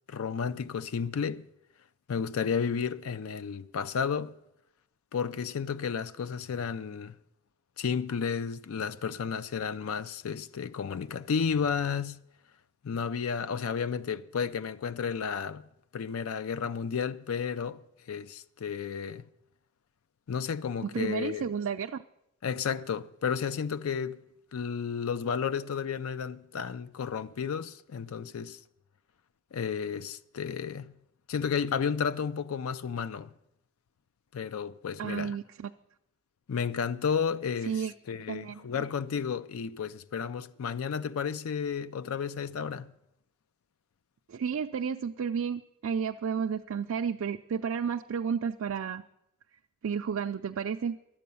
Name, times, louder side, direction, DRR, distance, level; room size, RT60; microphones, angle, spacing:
voice 1, 0.1-1.5 2.1-4.3 5.1-7.1 7.8-12.2 12.8-15.7 15.9-17.8 18.1-19.2 20.3-21.4 22.4-24.2 24.5-28.6 29.5-30.9 31.3-33.3 34.3-35.4 36.5-42.9, left 6 dB, 90° left, 0.4 m, -32 dB
voice 2, 20.8-22.0 35.0-35.7 37.7-37.9 38.3-38.7 44.3-49.0 49.8-51.0, right 7 dB, 75° right, 0.4 m, -32 dB
12.0 x 8.5 x 6.9 m
head